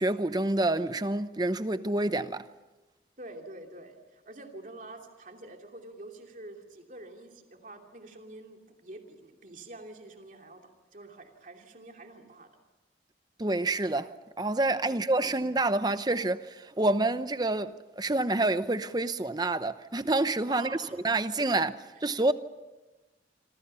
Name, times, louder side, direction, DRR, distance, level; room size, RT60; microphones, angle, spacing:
voice 1, 0.0-2.5 13.4-20.8 21.0-21.7 22.0-22.3, right 2 dB, 25° right, 0.8 m, -28 dB
voice 2, 3.2-10.6 10.9-12.5 14.8-15.5 20.5-20.9, right 2 dB, 45° right, 2.8 m, -47 dB
26.5 x 26.5 x 5.7 m
head